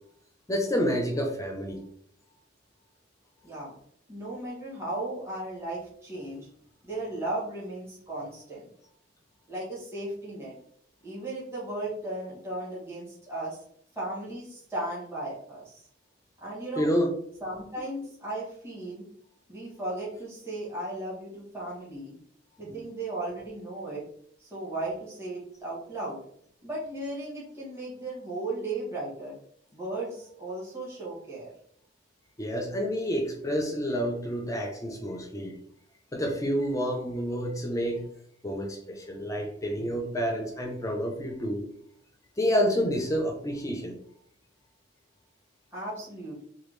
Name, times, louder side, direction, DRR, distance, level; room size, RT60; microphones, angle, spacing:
voice 1, 0.5-1.8 16.8-17.1 22.7-22.8 32.4-35.6 36.1-38.0 38.4-41.7 42.4-44.0, equal, 15° left, 2 dB, 0.4 m, -29 dB
voice 2, 4.1-6.5 6.8-8.7 9.5-10.5 11.0-13.6 13.9-15.9 16.4-16.9 17.4-19.0 19.5-22.2 22.6-24.1 24.4-26.2 26.6-29.3 29.7-31.5 45.7-46.4, right 2 dB, 15° right, -7 dB, 1.1 m, -36 dB
3.4 x 2.2 x 3.1 m, 0.64 s
head